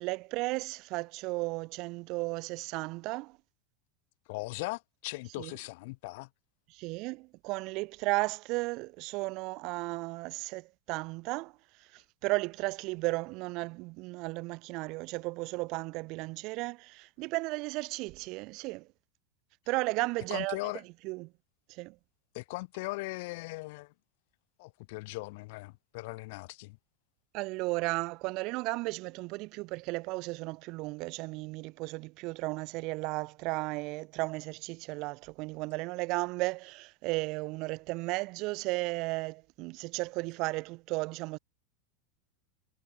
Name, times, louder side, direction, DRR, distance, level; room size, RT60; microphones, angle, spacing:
voice 1, 0.0-3.4 5.4-5.5 6.7-11.5 11.9-18.9 19.7-20.6 21.0-21.3 21.7-22.0 27.3-41.4, right 24 dB, 50° right, 0.5 m, -34 dB
voice 2, 4.3-6.3 20.3-20.8 22.3-23.9 24.6-26.8, left 24 dB, 65° left, 0.9 m, -39 dB
supercardioid pair, 135°, 0 cm